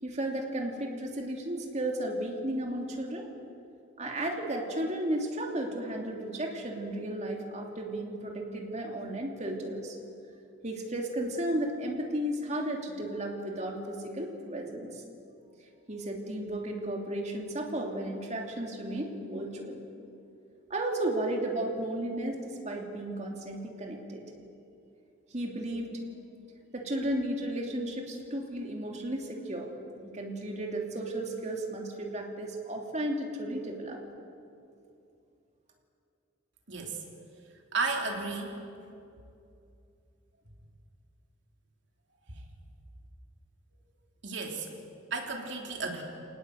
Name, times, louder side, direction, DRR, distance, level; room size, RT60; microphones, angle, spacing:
voice 1, 0.0-3.3 4.0-10.0 10.6-15.0 15.9-19.8 20.7-24.2 25.3-25.9 26.7-29.7 29.9-34.0, right 1 dB, 35° right, 1 dB, 3.0 m, -34 dB
voice 2, 37.7-38.5 44.2-44.7 45.1-46.0, right 3 dB, 60° right, 1 dB, 3.4 m, -33 dB
25.0 x 19.5 x 8.1 m, 2.7 s
head